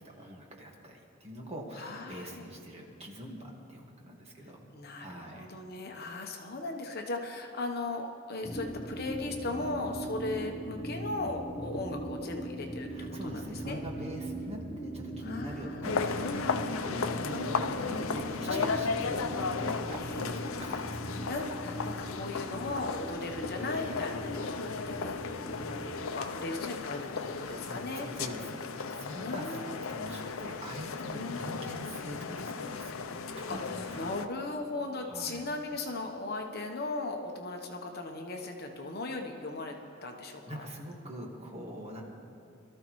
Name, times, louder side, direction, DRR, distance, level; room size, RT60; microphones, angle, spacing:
voice 1, 0.2-4.7 5.0-5.5 11.7-11.8 12.9-21.3 27.4-33.0 33.4-34.1 35.0-35.4 40.0-40.1 40.5-42.0, equal, 30° right, -1 dB, 1.7 m, -43 dB
voice 2, 1.8-2.5 4.7-13.8 15.2-16.0 17.3-17.8 18.5-18.9 20.0-20.7 21.3-25.2 25.5-28.1 29.2-30.0 31.1-31.5 32.8-32.9 33.5-39.7 40.0-40.7, left 2 dB, 50° left, 3 dB, 1.0 m, -38 dB
sound 1, 8.4-26.1, right 1 dB, 10° left, 0.9 m, -40 dB
sound 2, 15.8-34.3, left 5 dB, 75° left, 0.6 m, -35 dB
22.5 x 13.5 x 3.2 m, 2.6 s
head